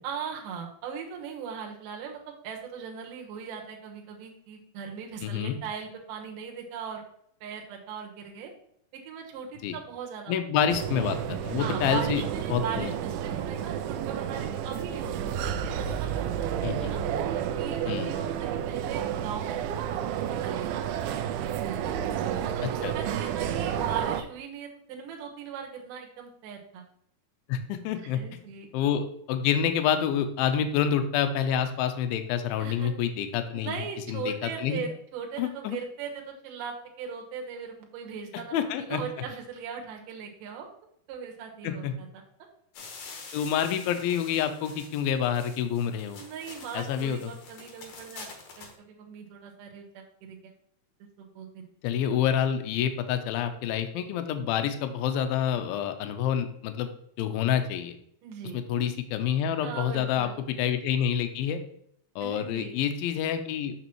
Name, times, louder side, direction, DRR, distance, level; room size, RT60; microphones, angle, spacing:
voice 1, 0.0-7.0 7.4-8.5 9.1-10.4 11.6-17.0 17.6-19.6 19.9-20.0 20.3-21.2 21.4-21.8 22.3-26.9 28.0-28.7 32.6-32.9 33.5-40.7 41.1-42.2 46.2-48.3 48.6-50.5 51.0-51.6 58.2-58.6 59.6-60.4 62.2-62.7, right 7 dB, 70° right, 1 dB, 2.5 m, -39 dB
voice 2, 5.2-5.6 9.6-9.8 10.3-11.2 11.4-12.2 12.5-12.9 16.6-16.9 17.9-18.1 22.8-22.9 27.5-28.2 28.7-33.8 34.1-34.3 34.6-34.8 35.4-35.8 38.5-39.0 41.6-41.9 43.3-46.2 46.7-47.2 51.8-56.9 57.2-57.9 58.5-60.3 60.6-61.6 62.2-63.7, left 9 dB, 80° left, 8 dB, 2.4 m, -27 dB
sound 1, 10.7-24.2, right 9 dB, 85° right, 2.4 m, -31 dB
sound 2, 42.7-48.7, left 4 dB, 65° left, 2.4 m, -46 dB
6.8 x 6.2 x 3.0 m, 0.68 s
omnidirectional pair, 4.3 m